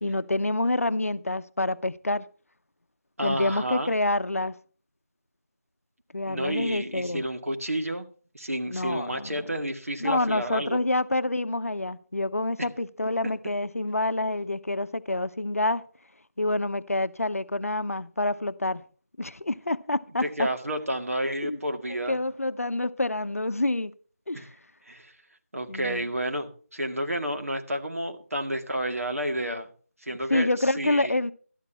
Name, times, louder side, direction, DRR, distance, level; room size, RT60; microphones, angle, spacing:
voice 1, 0.0-2.2 3.2-4.6 6.1-7.3 8.7-9.3 10.0-15.8 16.4-18.8 19.2-20.5 21.4-21.6 22.1-23.9 24.3-24.5 25.7-26.0 30.3-31.3, left 2 dB, 65° left, 0.7 m, -27 dB
voice 2, 3.2-3.9 6.3-8.1 8.3-10.8 12.6-12.7 20.2-22.2 24.3-24.5 24.9-25.1 25.5-29.7 30.0-31.2, right 1 dB, 65° right, 1.9 m, -30 dB
12.5 x 10.5 x 4.4 m
figure-of-eight pair, 170°, 8 cm